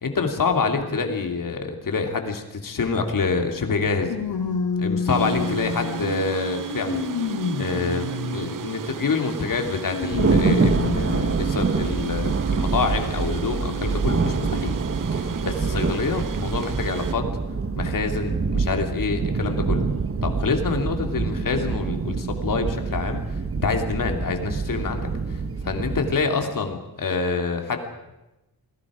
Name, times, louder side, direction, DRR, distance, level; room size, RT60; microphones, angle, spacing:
voice 1, 0.0-4.2 4.8-7.0 7.6-14.8 15.1-17.2 17.8-19.9 20.2-23.2 23.6-27.8, left 4 dB, 60° left, 5 dB, 2.8 m, -26 dB
sound 1, 2.9-3.0 4.1-6.1 6.7-8.7 9.9-11.3 12.0-12.1 13.3-13.4, left 5 dB, 75° left, 2.8 m, -28 dB
sound 2, 5.1-17.1, right 8 dB, 55° right, 0.9 m, -34 dB
Thunder, 10.1-26.1, right 4 dB, 35° right, 1.4 m, -26 dB
28.5 x 20.0 x 5.0 m, 0.99 s
wide cardioid pair, 130°, 38 cm